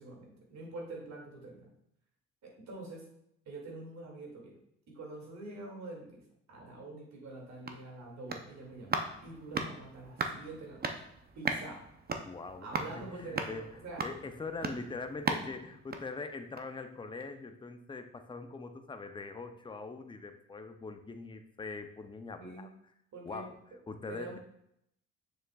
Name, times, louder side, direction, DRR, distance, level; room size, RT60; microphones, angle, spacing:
voice 1, 0.0-1.7 2.4-3.1 3.5-4.5 4.9-6.2 6.5-10.9 11.3-11.9 12.6-14.0 22.3-22.7 23.1-23.5 24.1-24.4, right 2 dB, 65° right, -1 dB, 2.4 m, -45 dB
sound 1, 7.3-16.8 17.2-17.3, right 4 dB, 30° right, 0.7 m, -39 dB
voice 2, 12.3-13.7 14.0-22.7 23.3-23.5 23.9-24.4, left 3 dB, 15° left, 7 dB, 0.6 m, -42 dB
6.8 x 6.4 x 2.4 m, 0.75 s
cardioid pair, 90°, 30 cm